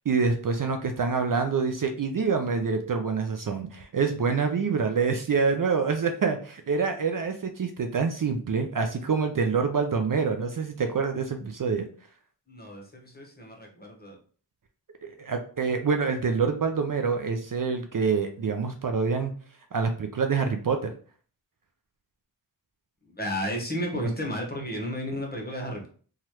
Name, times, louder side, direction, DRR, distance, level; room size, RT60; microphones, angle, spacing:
voice 1, 0.0-11.9 15.0-19.3 19.7-20.9 24.0-24.1, right 5 dB, 50° right, 5 dB, 0.4 m, -26 dB
voice 2, 12.5-14.2 23.1-25.9, equal, 20° left, 1 dB, 1.0 m, -33 dB
3.0 x 2.4 x 2.9 m, 0.43 s
wide cardioid pair, 45°, 43 cm